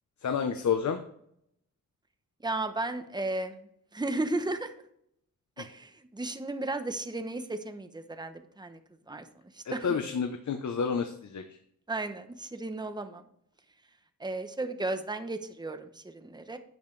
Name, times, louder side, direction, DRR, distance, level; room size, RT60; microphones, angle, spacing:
voice 1, 0.2-1.0 5.6-5.7 9.6-11.6, left 6 dB, 60° left, 7 dB, 0.9 m, -30 dB
voice 2, 2.4-4.7 5.6-8.8 9.1-9.3 9.5-9.9 11.9-13.2 14.2-16.6, right 2 dB, 15° right, 8 dB, 0.9 m, -34 dB
11.0 x 7.8 x 3.3 m, 0.70 s
wide cardioid pair, 115°, 33 cm